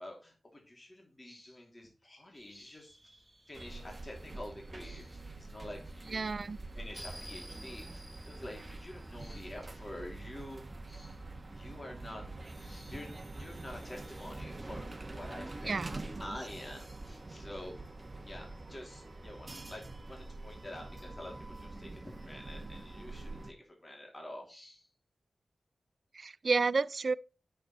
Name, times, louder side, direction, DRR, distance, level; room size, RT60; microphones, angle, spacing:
voice 1, 0.0-3.2 3.5-6.4 6.7-10.6 10.9-11.2 11.5-12.2 12.5-17.8 18.2-24.9, left 1 dB, 25° left, 2.7 m, -48 dB
sound 1, 2.3-9.8, equal, 15° right, 2.5 m, -55 dB
sound 2, 3.5-23.5, right 2 dB, 30° right, 1.4 m, -45 dB
voice 2, 6.1-6.6 15.7-16.0 26.1-27.1, right 4 dB, 55° right, 0.4 m, -31 dB
8.9 x 7.0 x 4.2 m
wide cardioid pair, 105°, 0 cm